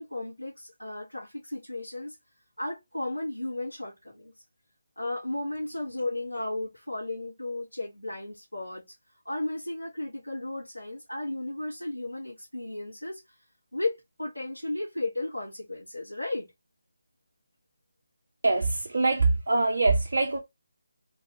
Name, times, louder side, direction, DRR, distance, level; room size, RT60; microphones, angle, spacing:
voice 1, 0.0-2.2 2.6-4.3 5.0-8.8 9.3-13.2 13.7-16.5, left 2 dB, 90° left, 1.8 m, -34 dB
voice 2, 18.4-20.4, right 3 dB, 55° right, 0.6 m, -24 dB
3.3 x 3.0 x 3.0 m
figure-of-eight pair, 150°, 0 cm